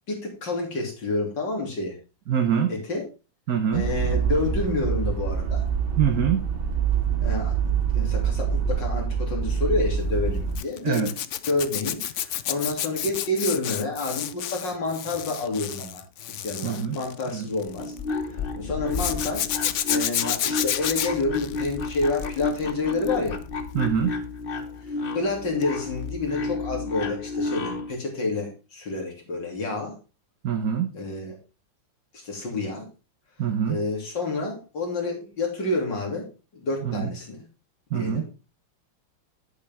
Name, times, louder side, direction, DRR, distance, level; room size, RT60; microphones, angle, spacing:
voice 1, 0.1-2.0 2.7-3.0 3.7-5.7 7.2-11.1 11.5-16.0 16.4-17.9 18.6-23.4 24.8-30.0 30.9-31.3 32.1-32.9 33.7-36.3 36.5-37.4 37.9-38.2, left 2 dB, 70° left, 1 dB, 3.7 m, -29 dB
voice 2, 2.3-2.7 3.5-3.8 6.0-6.5 10.8-11.1 16.6-17.0 17.3-17.5 23.7-24.1 30.4-30.9 33.4-33.8 36.8-37.1 37.9-38.2, right 8 dB, 55° right, 5 dB, 1.4 m, -24 dB
sound 1, 3.7-10.6, right 6 dB, 85° right, 3.0 m, -25 dB
Zipper (clothing), 10.5-18.0 18.9-22.6 22.9-23.3 25.6-25.8 26.0-26.1, left 11 dB, 85° left, 0.6 m, -30 dB
sound 2, 17.7-27.9, left 3 dB, 40° left, 0.8 m, -31 dB
10.0 x 8.6 x 3.5 m, 0.31 s
omnidirectional pair, 2.1 m